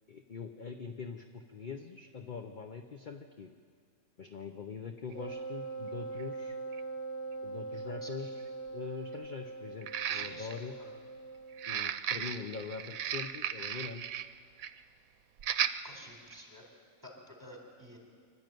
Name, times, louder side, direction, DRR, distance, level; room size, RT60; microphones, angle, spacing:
voice 1, 0.1-3.5 4.2-6.6 7.4-8.3 8.7-10.8 11.7-14.1, left 5 dB, 40° left, 5 dB, 0.8 m, -43 dB
Wind instrument woodwind instrument, 5.1-11.8, right 3 dB, 15° left, 1.0 m, -42 dB
sound 1, 5.1-5.2 6.2-6.3 6.7-6.8 9.8-10.6 11.5-14.3 14.6-14.8 15.4-15.8 16.3-16.4, right 10 dB, 75° right, 1.1 m, -35 dB
voice 2, 8.0-8.3 10.1-10.9 15.8-16.7 17.0-18.0, equal, 15° right, 0 dB, 4.1 m, -51 dB
25.0 x 12.0 x 9.2 m, 2.1 s
omnidirectional pair, 1.5 m